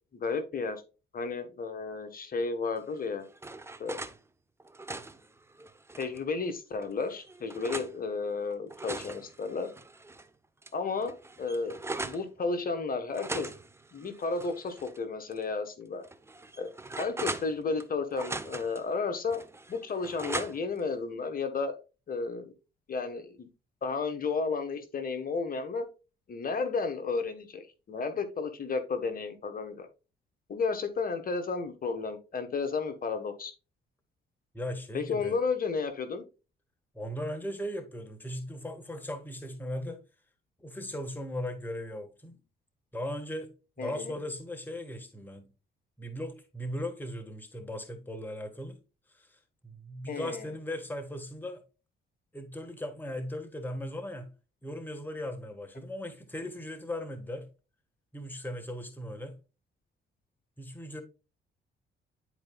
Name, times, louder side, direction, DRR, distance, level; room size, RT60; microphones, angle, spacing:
voice 1, 0.1-0.8 1.1-3.2 3.8-4.0 6.0-9.7 10.7-13.5 13.9-16.0 16.6-16.7 17.0-19.4 19.7-21.8 22.1-22.5 22.9-23.5 23.8-25.8 26.3-29.9 30.5-33.5 34.9-36.2 43.8-44.1 50.1-50.5, left 4 dB, 45° left, 1.4 m, -33 dB
sound 1, 2.9-4.2 4.6-6.2 6.8-7.9 8.5-10.3 10.6-10.7 11.0-12.3 13.1-15.0 15.3-15.4 16.0-17.9 18.1-18.8 19.3-20.8, right 2 dB, 15° right, 0.7 m, -40 dB
voice 2, 34.5-35.3 36.9-40.0 40.6-42.4 42.9-45.5 46.0-48.8 49.1-51.6 52.3-54.3 54.6-57.5 58.1-59.4 60.6-61.0, left 1 dB, 10° left, 1.4 m, -38 dB
10.5 x 4.5 x 2.3 m
cardioid pair, 90°, 20 cm